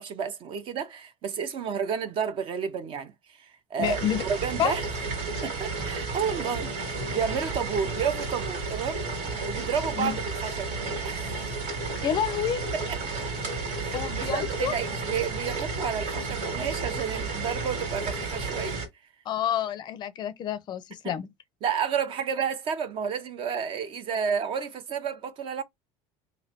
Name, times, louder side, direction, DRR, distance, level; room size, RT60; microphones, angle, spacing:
voice 1, 0.0-4.8 5.4-9.1 9.5-10.2 10.4-10.7 11.0-11.3 12.7-13.0 13.8-14.0 14.3-18.8 21.0-21.1 21.6-25.6, right 7 dB, 40° right, 0.6 m, -31 dB
voice 2, 3.8-4.2 4.6-4.7 10.0-10.2 12.0-12.6 13.9-14.7 19.3-21.3, left 9 dB, 35° left, 0.4 m, -28 dB
sound 1, 3.8-18.9, right 3 dB, 75° right, 1.8 m, -32 dB
3.1 x 2.6 x 4.1 m
cardioid pair, 155°, 13 cm